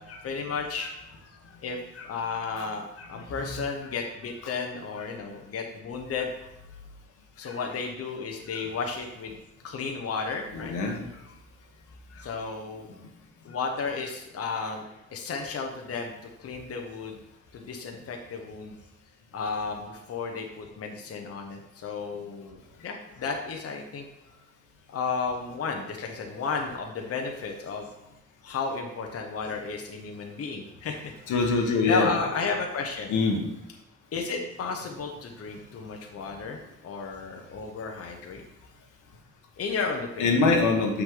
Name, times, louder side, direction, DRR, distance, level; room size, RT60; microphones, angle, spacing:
voice 1, 0.0-6.7 7.4-9.4 9.6-10.7 11.1-11.3 12.1-12.9 13.4-16.1 16.4-17.2 17.5-18.8 19.3-24.1 24.9-27.9 28.4-31.1 31.6-33.1 34.1-38.4 39.6-40.4, left 4 dB, 50° left, 2 dB, 1.0 m, -33 dB
voice 2, 10.5-11.0 31.3-32.1 33.1-33.4 40.2-41.0, left 3 dB, 85° left, 2 dB, 1.4 m, -23 dB
6.4 x 6.0 x 3.8 m, 0.88 s
cardioid pair, 90°, 30 cm